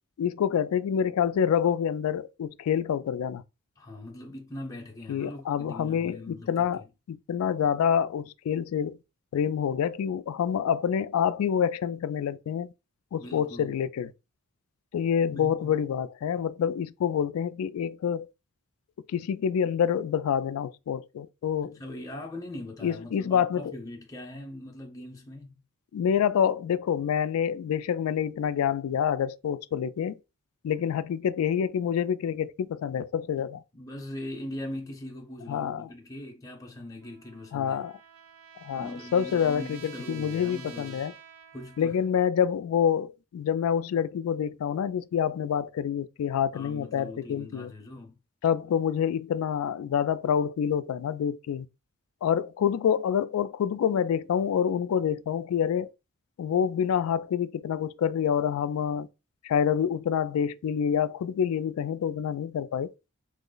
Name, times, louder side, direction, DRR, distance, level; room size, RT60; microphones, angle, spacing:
voice 1, 0.2-3.4 5.1-9.0 9.3-12.7 13.1-14.1 14.9-18.3 19.1-21.8 22.8-23.6 25.9-30.2 30.6-33.6 35.5-35.9 37.5-37.9 38.6-41.1 41.8-47.7 48.4-51.7 52.2-55.9 56.4-59.1 59.4-62.9, left 8 dB, 85° left, 0.3 m, -27 dB
voice 2, 3.8-6.9 13.2-13.7 15.3-15.7 21.6-25.6 33.7-37.8 38.8-41.0 41.5-42.0 46.5-48.2, left 1 dB, 15° left, 0.6 m, -41 dB
Trumpet, 37.0-42.2, right 7 dB, 85° right, 0.5 m, -49 dB
3.1 x 2.0 x 3.8 m
head